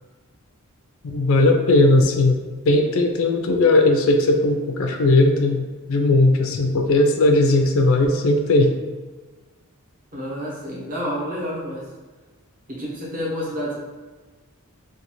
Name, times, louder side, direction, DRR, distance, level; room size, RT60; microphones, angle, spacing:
voice 1, 1.0-2.4 2.7-8.7, left 2 dB, 65° left, 4 dB, 0.4 m, -18 dB
voice 2, 10.1-11.9 12.7-13.7, equal, 40° right, -6 dB, 0.9 m, -29 dB
2.6 x 2.3 x 3.0 m, 1.3 s
head